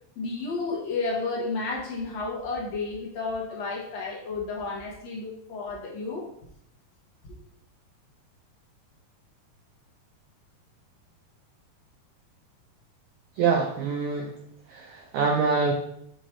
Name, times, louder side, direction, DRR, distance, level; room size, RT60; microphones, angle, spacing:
voice 1, 0.2-6.3, left 3 dB, 70° left, -2 dB, 1.7 m, -32 dB
voice 2, 13.4-14.3 14.7-15.7, right 5 dB, 90° right, 1 dB, 1.7 m, -25 dB
7.9 x 3.0 x 4.3 m, 0.72 s
omnidirectional pair, 4.3 m